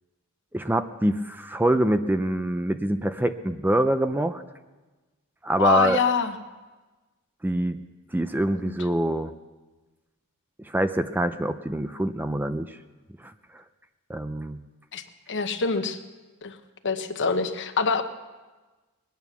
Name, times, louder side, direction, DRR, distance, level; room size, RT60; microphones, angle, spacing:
voice 1, 0.5-4.4 5.4-6.0 7.4-7.8 8.1-9.3 10.6-12.8 13.2-13.3 14.1-14.6, right 1 dB, 10° right, 10 dB, 0.4 m, -25 dB
voice 2, 5.6-6.3 8.6-8.7 14.9-15.0 15.3-16.0 16.4-16.6 16.8-18.0, left 5 dB, 55° left, 8 dB, 1.0 m, -25 dB
21.0 x 9.1 x 6.9 m, 1.2 s
head